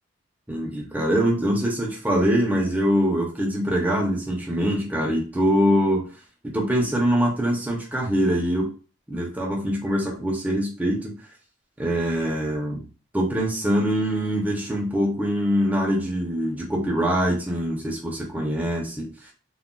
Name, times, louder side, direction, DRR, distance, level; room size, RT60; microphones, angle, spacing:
voice 1, 0.5-6.1 6.4-8.7 9.1-11.1 11.8-12.8 13.1-19.3, equal, 10° right, -2 dB, 0.6 m, -23 dB
3.7 x 2.2 x 2.2 m, 0.36 s
head